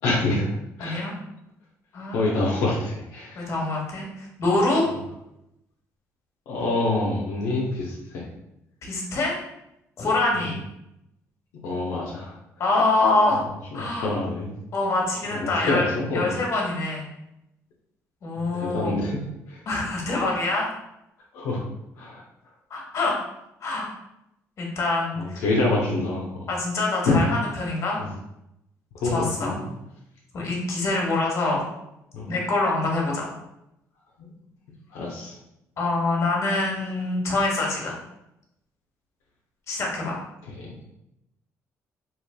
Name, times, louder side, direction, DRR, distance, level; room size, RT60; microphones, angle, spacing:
voice 1, 0.0-0.5 0.8-1.1 2.1-3.5 6.5-8.2 11.6-12.3 13.7-14.5 15.3-16.3 18.4-19.6 21.3-21.6 22.0-22.2 25.2-26.5 27.0-27.2 28.0-28.1 28.9-29.5 32.1-32.3 34.2-34.3 34.9-35.4 40.6-40.7, left 2 dB, 85° left, -3 dB, 0.6 m, -26 dB
voice 2, 0.8-1.1 1.9-2.4 3.3-4.9 8.8-9.4 10.0-10.6 12.6-13.4 13.7-14.1 14.7-17.1 18.2-18.9 19.7-20.7 22.7-23.2 23.6-23.9 24.6-25.4 26.5-28.0 29.1-29.6 30.3-31.6 32.3-33.3 35.8-37.9 39.7-40.2, left 2 dB, 55° left, -1 dB, 1.1 m, -25 dB
3.1 x 2.9 x 2.2 m, 0.84 s
cardioid pair, 95°, 6 cm